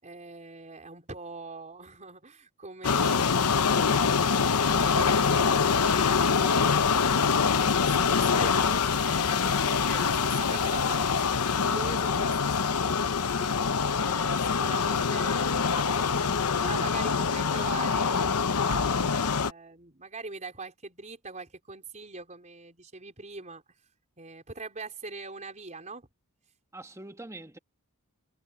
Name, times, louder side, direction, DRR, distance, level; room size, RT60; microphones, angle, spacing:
voice 1, 0.0-16.3 16.6-23.6 24.2-26.1, right 3 dB, 35° right, 4.6 m, -42 dB
sound 1, 2.8-19.5, left 5 dB, 90° left, 0.9 m, -25 dB
voice 2, 9.2-10.1 17.2-17.3 26.7-27.6, right 2 dB, 15° right, 1.6 m, -45 dB
head